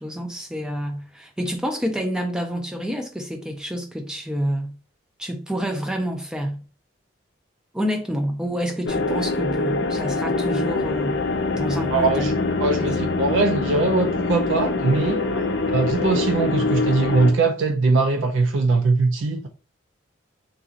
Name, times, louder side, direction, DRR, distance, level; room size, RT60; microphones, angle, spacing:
voice 1, 0.0-4.7 5.2-6.6 7.7-11.2 11.6-12.3 12.7-12.9 15.3-15.5, equal, 5° right, 0.4 m, -28 dB
sound 1, 8.8-17.3, left 3 dB, 55° left, 0.4 m, -24 dB
voice 2, 11.9-12.3 12.6-15.2 15.7-19.5, right 3 dB, 70° right, 0.4 m, -21 dB
3.8 x 2.7 x 2.4 m
head